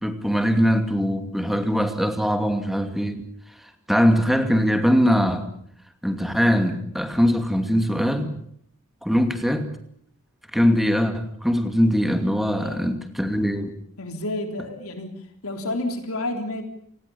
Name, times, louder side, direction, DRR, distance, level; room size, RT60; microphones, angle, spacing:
voice 1, 0.0-3.2 3.9-5.5 6.0-8.4 9.0-9.7 10.5-13.7, equal, ahead, 7 dB, 2.6 m, -21 dB
voice 2, 14.0-15.1 15.4-16.6, left 1 dB, 85° left, 5 dB, 3.7 m, -30 dB
29.0 x 19.0 x 7.1 m, 0.66 s
head